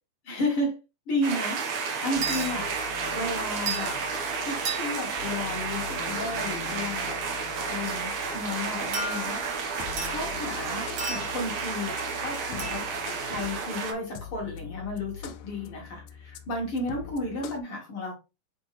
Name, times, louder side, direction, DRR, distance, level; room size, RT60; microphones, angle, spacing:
voice 1, 0.2-0.7 1.1-1.6 2.0-2.7 3.1-4.0 4.4-7.2 7.7-12.9 13.2-18.2, left 1 dB, 45° left, 2.6 m, -33 dB
sound 1, 1.2-13.9, right 5 dB, 70° right, 2.7 m, -32 dB
sound 2, 2.1-17.6, left 8 dB, 90° left, 2.3 m, -44 dB
sound 3, 2.2-2.5 3.7-4.0 4.6-5.1 8.9-9.6 10.0-10.2 11.0-11.5 12.6-12.8, right 4 dB, 50° right, 1.8 m, -33 dB
7.1 x 4.3 x 3.3 m
omnidirectional pair, 3.7 m